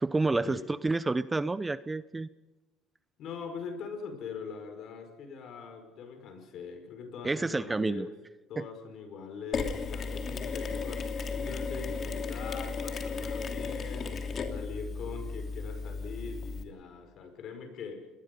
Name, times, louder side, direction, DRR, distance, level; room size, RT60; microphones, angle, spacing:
voice 1, 0.0-2.3 7.2-8.1 8.6-8.7, right 3 dB, 15° right, 15 dB, 0.7 m, -29 dB
voice 2, 3.2-8.1 8.5-14.2 14.5-18.1, left 5 dB, 60° left, 6 dB, 5.4 m, -42 dB
Mechanisms, 9.5-16.6, left 4 dB, 45° left, 2.9 m, -35 dB
28.0 x 20.0 x 5.4 m, 1.1 s
supercardioid pair, 90°, 0 cm